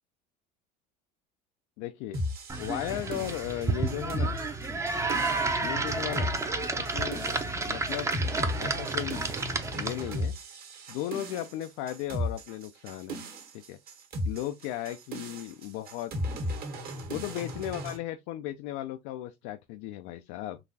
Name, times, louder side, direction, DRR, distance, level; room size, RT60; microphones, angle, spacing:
voice 1, 1.8-2.2 2.6-4.4 5.6-6.3 6.8-7.2 7.7-8.1 8.6-9.2 9.7-10.3 10.9-13.2 13.5-13.8 14.2-16.1 17.1-20.6, left 13 dB, 75° left, 0.4 m, -36 dB
sound 1, 2.1-18.0, equal, 50° right, 1.4 m, -36 dB
sound 2, 2.5-10.2, right 3 dB, 15° right, 0.6 m, -31 dB
3.9 x 2.4 x 2.7 m
supercardioid pair, 105°, 19 cm